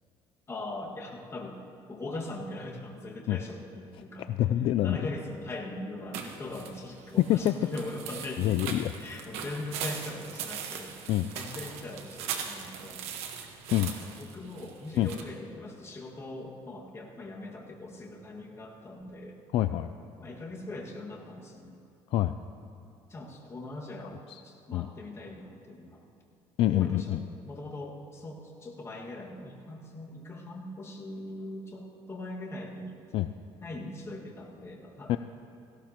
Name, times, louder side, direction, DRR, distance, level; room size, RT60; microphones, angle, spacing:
voice 1, 0.5-1.6 1.9-4.3 4.8-8.6 9.0-13.1 14.0-19.4 20.2-21.8 23.1-26.0 26.7-27.2 27.4-33.0 33.6-35.2, left 2 dB, 25° left, -1 dB, 1.9 m, -41 dB
voice 2, 4.3-5.0 7.3-7.5 8.4-8.9 11.1-11.3 13.7-13.9 15.0-15.1 19.5-19.9 22.1-22.3 24.3-24.4 24.7-24.9 26.6-27.2 33.1-33.3 35.1-35.2, left 13 dB, 60° left, 10 dB, 0.4 m, -26 dB
sound 1, 6.1-15.2, right 7 dB, 85° right, 1.3 m, -40 dB
17.5 x 16.0 x 3.0 m, 2.6 s
cardioid pair, 130°, 10 cm